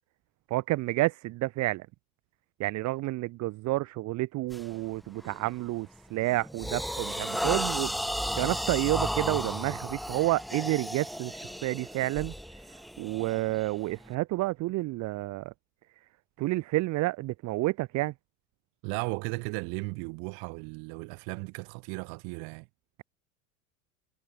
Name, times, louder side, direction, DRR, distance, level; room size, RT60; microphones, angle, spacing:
voice 1, 0.5-1.9 2.6-15.5 16.4-18.1, right 19 dB, 45° right, 0.8 m, -30 dB
sound 1, 4.5-4.7 5.2-5.5 6.0-14.1, equal, ahead, 0.3 m, -34 dB
voice 2, 18.8-22.7, right 37 dB, 65° right, 2.5 m, -36 dB
supercardioid pair, 100°, 39 cm